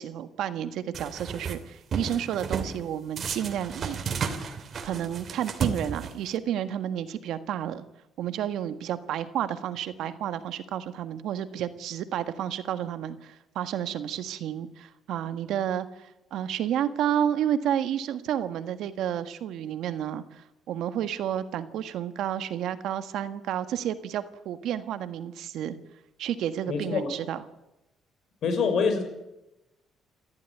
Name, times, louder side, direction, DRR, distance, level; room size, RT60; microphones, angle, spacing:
voice 1, 0.0-4.3 4.8-7.8 8.2-25.8 26.2-27.4, right 10 dB, 75° right, 10 dB, 1.6 m, -31 dB
sound 1, 0.9-1.6 1.9-2.7 3.2-6.4, right 6 dB, 45° right, 2.9 m, -33 dB
voice 2, 26.7-27.1 28.4-29.0, left 5 dB, 55° left, 7 dB, 5.7 m, -25 dB
28.5 x 13.5 x 9.5 m, 0.94 s
cardioid pair, 125°, 0 cm